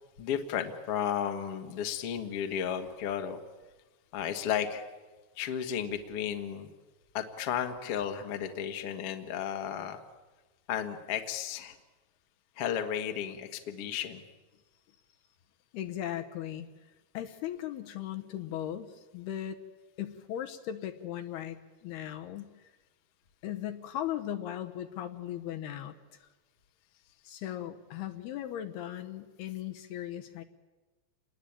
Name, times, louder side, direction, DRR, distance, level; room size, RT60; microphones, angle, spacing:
voice 1, 0.2-3.4 4.1-4.9 5.3-6.7 7.1-10.0 10.7-11.8 12.6-14.2 27.4-27.5, left 9 dB, 55° left, 5 dB, 1.6 m, -33 dB
voice 2, 15.7-16.7 17.1-19.6 20.0-22.7 23.4-25.9 26.2-26.3 27.3-30.4, left 11 dB, 75° left, 7 dB, 2.7 m, -38 dB
28.5 x 20.5 x 8.8 m, 1.2 s
omnidirectional pair, 5.2 m